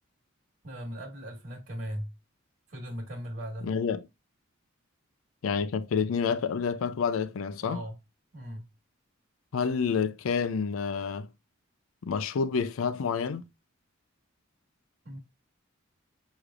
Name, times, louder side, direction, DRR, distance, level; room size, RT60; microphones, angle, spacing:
voice 1, 0.6-2.1 2.7-3.7 7.6-7.9 8.3-8.6 15.0-15.2, equal, 50° right, 1.6 m, -38 dB
voice 2, 3.6-4.0 5.4-7.8 9.5-11.3 12.0-13.4, left 6 dB, 80° left, 0.4 m, -28 dB
6.4 x 3.1 x 2.3 m
head